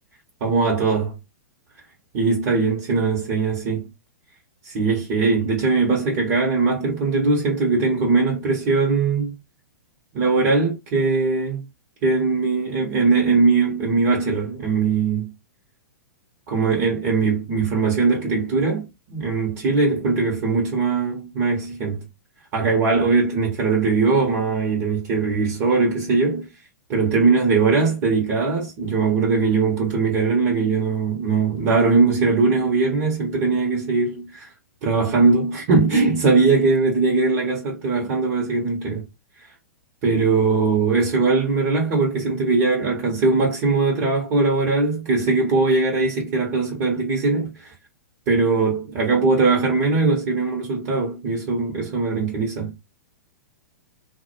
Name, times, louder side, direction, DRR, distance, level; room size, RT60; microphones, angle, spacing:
voice 1, 0.4-1.2 2.1-3.9 4.6-9.3 10.1-11.6 12.0-15.3 16.5-22.1 22.5-26.5 26.9-34.5 34.8-39.1 40.0-47.7 48.3-52.7, right 4 dB, 40° right, 0.8 m, -20 dB
2.1 x 2.0 x 2.9 m
figure-of-eight pair, 105°, 9 cm